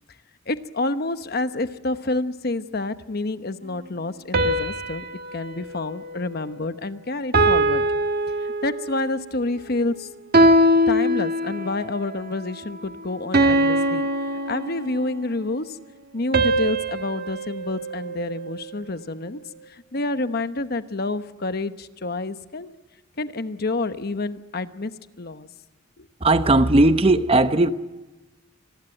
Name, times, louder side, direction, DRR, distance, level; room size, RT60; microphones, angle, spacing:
voice 1, 0.5-7.8 8.4-10.1 10.9-14.1 14.5-15.8 16.1-19.4 19.7-22.7 23.2-25.5 26.0-26.1, left 2 dB, 50° left, 1.0 m, -28 dB
sound 1, 4.3-6.8 7.3-9.1 10.3-11.9 13.3-15.2 16.3-18.7, right 1 dB, 50° right, 1.5 m, -22 dB
voice 2, 26.2-27.7, right 2 dB, 30° right, 0.9 m, -17 dB
26.5 x 20.0 x 9.1 m
head